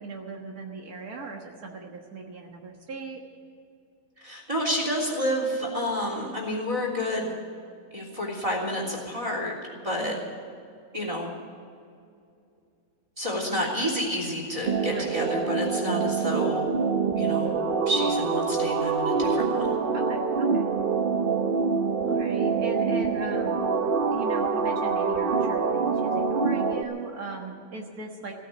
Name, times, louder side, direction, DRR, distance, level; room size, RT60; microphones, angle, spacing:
voice 1, 0.0-3.2 10.0-10.2 14.9-15.1 19.9-20.2 20.5-20.7 22.1-23.6 24.1-28.3, right 3 dB, 75° right, 1 dB, 2.0 m, -38 dB
voice 2, 4.2-7.3 7.9-9.5 9.8-10.1 10.9-11.3 13.2-16.7 17.2-17.6 17.9-19.8, equal, 20° right, 0 dB, 3.4 m, -29 dB
sound 1, 14.6-26.8, right 5 dB, 45° right, 0.9 m, -25 dB
16.0 x 9.1 x 9.1 m, 2.4 s
omnidirectional pair, 1.6 m